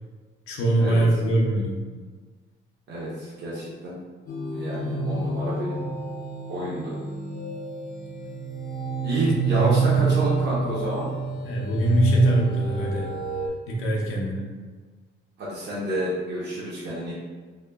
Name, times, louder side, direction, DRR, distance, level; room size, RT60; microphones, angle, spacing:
voice 1, 0.5-1.8 9.2-10.3 11.4-13.1 13.7-14.5, right 2 dB, 90° left, -2 dB, 0.7 m, -23 dB
voice 2, 2.9-4.0 4.5-5.8 6.5-7.0 9.0-11.1 15.4-17.1, right 1 dB, 55° right, -7 dB, 0.8 m, -29 dB
sound 1, 4.3-13.5, right 3 dB, 45° left, 0.5 m, -28 dB
3.1 x 2.2 x 3.3 m, 1.4 s
cardioid pair, 165°, 21 cm